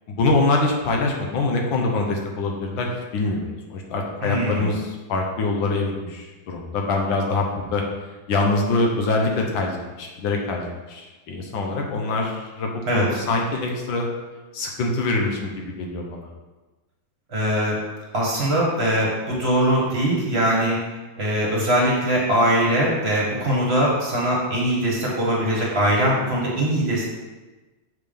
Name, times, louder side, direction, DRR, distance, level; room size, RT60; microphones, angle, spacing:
voice 1, 0.1-7.8 8.3-14.1 14.5-16.3, left 3 dB, 75° left, 1 dB, 1.7 m, -24 dB
voice 2, 4.2-4.7 12.9-13.0 17.3-17.8 18.1-20.9 21.2-27.0, right 1 dB, 35° right, -4 dB, 1.5 m, -21 dB
6.7 x 3.6 x 5.2 m, 1.2 s
omnidirectional pair, 2.1 m